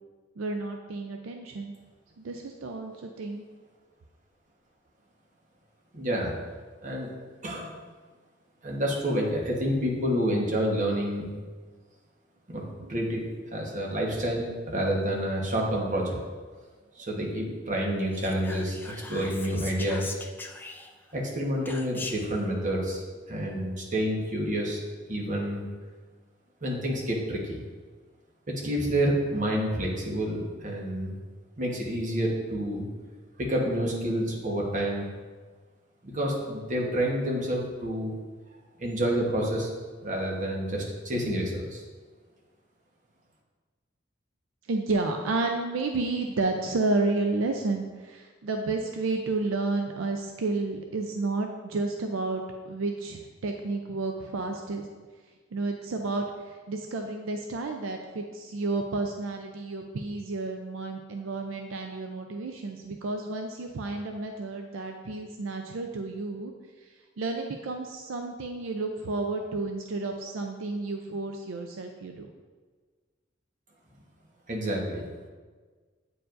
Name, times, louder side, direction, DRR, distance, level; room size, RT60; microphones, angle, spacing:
voice 1, 0.4-1.7 2.2-3.5 44.7-52.4 52.7-54.9 55.5-66.5 67.2-72.3, right 3 dB, 75° right, 4 dB, 0.4 m, -31 dB
voice 2, 5.9-6.3 6.8-7.1 7.4-7.7 8.6-11.3 12.5-12.6 12.9-16.2 16.9-20.2 21.1-23.0 23.3-24.8 25.1-25.6 26.6-27.6 28.6-31.2 31.6-32.8 33.4-35.1 36.0-38.1 38.8-39.7 40.0-41.8 74.5-75.1, equal, 40° right, -2 dB, 1.1 m, -28 dB
Whispering, 18.1-21.1 21.6-22.4, left 3 dB, 10° left, 0.3 m, -41 dB
8.7 x 4.6 x 2.5 m, 1.4 s
head